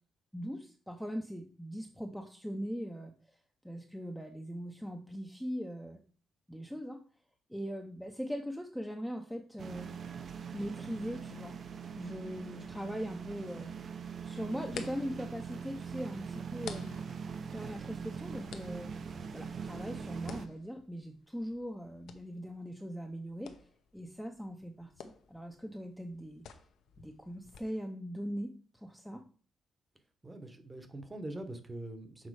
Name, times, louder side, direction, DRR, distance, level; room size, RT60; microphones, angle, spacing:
voice 1, 0.3-3.1 3.6-6.0 6.5-7.0 7.5-9.9 10.5-11.6 12.0-13.7 14.2-17.0 17.5-18.9 19.3-23.5 23.9-24.9 25.3-26.4 27.0-29.2, equal, ahead, 3 dB, 0.6 m, -40 dB
sound 1, 9.6-20.5, right 6 dB, 50° right, 0.7 m, -42 dB
sound 2, 12.1-27.6, left 7 dB, 80° left, 0.8 m, -53 dB
voice 2, 30.2-32.3, right 1 dB, 15° right, 8 dB, 1.0 m, -43 dB
6.3 x 4.2 x 4.8 m, 0.41 s
cardioid pair, 130°, 0 cm